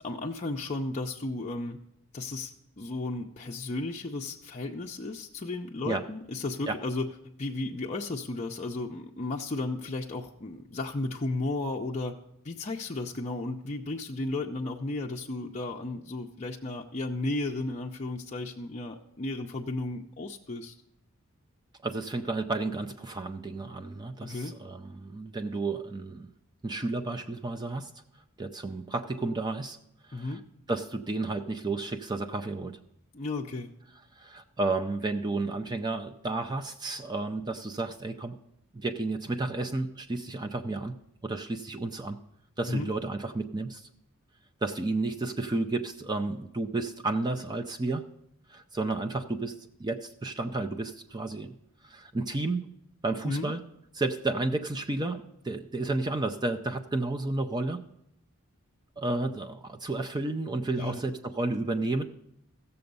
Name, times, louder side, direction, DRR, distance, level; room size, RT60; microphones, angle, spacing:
voice 1, 0.0-1.8 2.1-7.1 7.4-12.2 12.4-20.7 24.2-24.5 30.1-30.4 33.1-33.7 42.7-42.9 53.2-53.5 60.8-61.0, left 2 dB, 30° left, -1 dB, 0.5 m, -34 dB
voice 2, 21.8-26.3 26.6-27.9 28.4-29.8 30.1-30.4 30.7-32.8 34.2-38.4 38.7-40.9 41.2-42.2 42.6-43.9 44.6-48.0 48.5-49.5 49.8-51.5 51.8-52.6 53.0-53.6 53.9-57.8 59.0-62.0, right 2 dB, 20° right, 6 dB, 0.5 m, -32 dB
15.5 x 6.9 x 5.3 m, 0.79 s
head